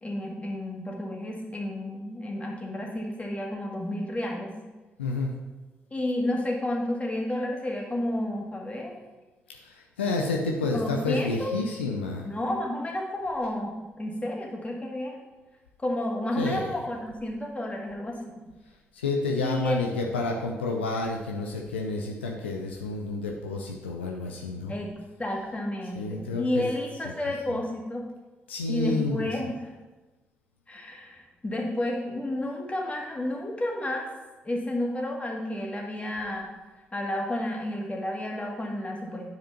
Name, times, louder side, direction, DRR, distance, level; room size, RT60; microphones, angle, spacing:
voice 1, 0.0-4.6 5.9-9.0 10.7-11.5 12.3-15.2 15.8-18.2 19.4-19.8 24.7-24.9 25.2-28.1 28.7-29.7 30.7-34.1 34.4-36.5 36.9-39.3, left 1 dB, 20° left, -1 dB, 2.0 m, -31 dB
voice 2, 5.0-5.3 9.6-12.3 16.3-16.9 18.9-24.7 25.9-26.7 27.0-27.6 28.5-29.4, left 3 dB, 85° left, 0 dB, 0.5 m, -30 dB
9.3 x 5.0 x 4.4 m, 1.2 s
figure-of-eight pair, 40°, 6 cm